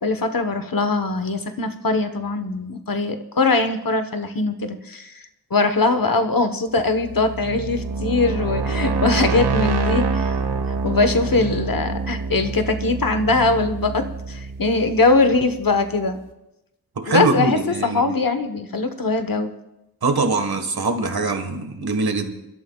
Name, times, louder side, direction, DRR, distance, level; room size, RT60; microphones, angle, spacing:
voice 1, 0.0-5.2 5.5-10.3 10.8-16.2 17.1-19.5, left 3 dB, 60° left, 8 dB, 1.3 m, -21 dB
sound 1, 6.9-15.7, right 4 dB, 90° right, 1.3 m, -26 dB
voice 2, 17.0-18.1 20.0-22.3, right 3 dB, 70° right, 6 dB, 1.6 m, -22 dB
30.0 x 12.5 x 2.4 m, 0.91 s
wide cardioid pair, 80°, 38 cm